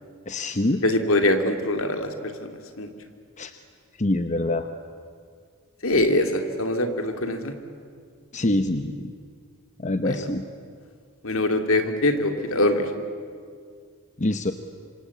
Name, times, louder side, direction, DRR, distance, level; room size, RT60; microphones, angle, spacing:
voice 1, 0.3-0.8 3.4-3.5 4.0-4.7 8.3-9.1 9.8-10.4 14.2-14.5, left 1 dB, 35° left, 8 dB, 0.9 m, -25 dB
voice 2, 0.8-2.1 2.4-2.9 5.8-7.5 10.0-10.2 11.2-12.9, left 1 dB, 65° left, 6 dB, 2.5 m, -23 dB
26.5 x 25.5 x 8.4 m, 2.1 s
head